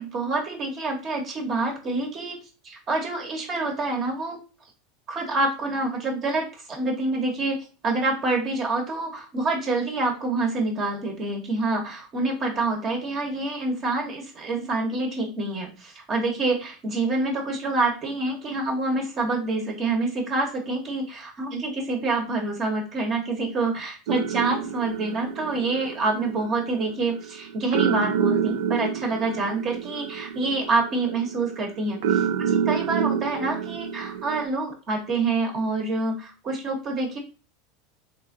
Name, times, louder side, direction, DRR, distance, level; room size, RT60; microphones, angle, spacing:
voice 1, 0.0-4.4 5.1-7.6 7.8-37.2, right 3 dB, 40° right, 1 dB, 0.9 m, -27 dB
sound 1, 24.1-34.5, right 7 dB, 75° right, 0.3 m, -28 dB
3.5 x 2.4 x 2.6 m, 0.34 s
hypercardioid pair, 95°, 0 cm